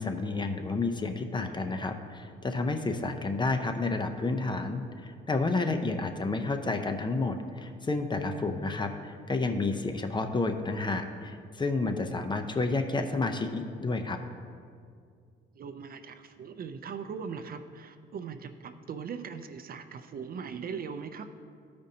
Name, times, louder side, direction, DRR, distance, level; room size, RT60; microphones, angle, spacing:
voice 1, 0.0-14.2, left 3 dB, 25° left, 6 dB, 0.6 m, -30 dB
voice 2, 15.5-21.3, right 6 dB, 50° right, 9 dB, 0.5 m, -40 dB
14.0 x 5.2 x 2.8 m, 2.2 s
cardioid pair, 90°, 20 cm